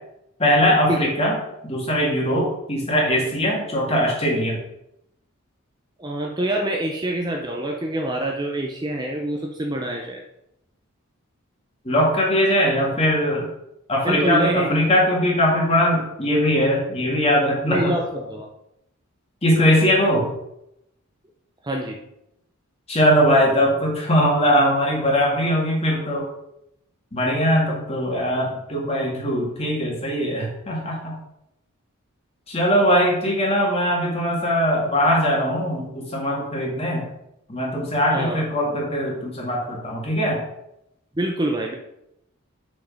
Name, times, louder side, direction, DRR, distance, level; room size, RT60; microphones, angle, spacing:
voice 1, 0.4-1.4 1.6-4.6 11.8-13.5 13.9-18.0 19.4-20.3 22.9-26.3 27.1-31.1 32.5-37.1 37.5-40.4, equal, 25° left, -2 dB, 1.9 m, -20 dB
voice 2, 6.0-10.2 14.0-14.8 17.7-18.5 21.6-22.0 29.6-29.7 38.1-38.4 41.2-41.8, right 1 dB, 20° right, 1 dB, 0.6 m, -25 dB
6.2 x 5.3 x 5.1 m, 0.83 s
head